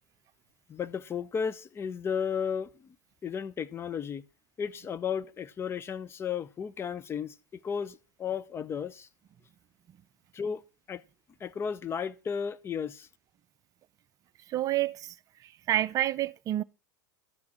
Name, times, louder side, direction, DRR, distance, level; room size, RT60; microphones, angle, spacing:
voice 1, 0.7-3.0 3.2-4.2 4.6-9.1 10.3-11.0 11.4-13.1, left 7 dB, 25° left, 0.7 m, -34 dB
voice 2, 14.5-15.1 15.7-16.6, right 13 dB, 35° right, 0.6 m, -28 dB
13.0 x 5.9 x 6.2 m
figure-of-eight pair, 85°, 10 cm